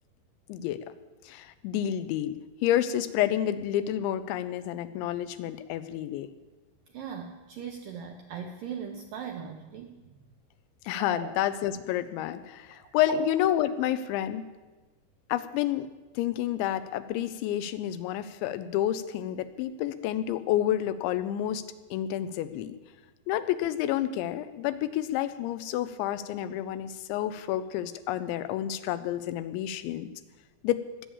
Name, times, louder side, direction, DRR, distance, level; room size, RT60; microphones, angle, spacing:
voice 1, 0.5-0.9 1.2-6.3 10.9-14.5 15.3-15.9 16.2-21.6 21.9-22.8 23.3-30.1 30.6-30.9, left 12 dB, 90° left, 12 dB, 3.1 m, -29 dB
voice 2, 6.9-10.1 11.1-11.3 12.7-13.2, right 8 dB, 85° right, 4 dB, 1.9 m, -38 dB
21.0 x 8.6 x 7.2 m, 1.2 s
omnidirectional pair, 5.2 m